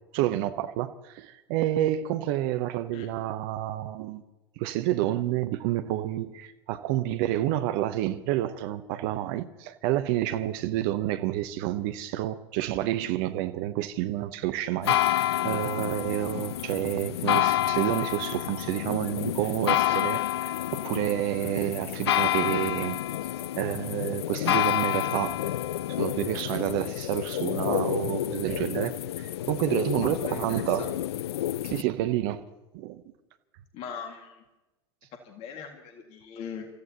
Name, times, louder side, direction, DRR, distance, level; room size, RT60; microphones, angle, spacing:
voice 1, 0.1-4.2 4.6-23.0 23.6-25.3 25.9-30.9 31.6-32.4 32.7-33.0, right 13 dB, 55° right, 0.8 m, -29 dB
sound 1, 14.8-31.8, left 13 dB, 70° left, 0.4 m, -29 dB
voice 2, 30.0-30.9 33.7-34.4 35.2-36.7, left 6 dB, 45° left, 2.0 m, -41 dB
30.0 x 15.0 x 2.9 m
figure-of-eight pair, 85°, 14 cm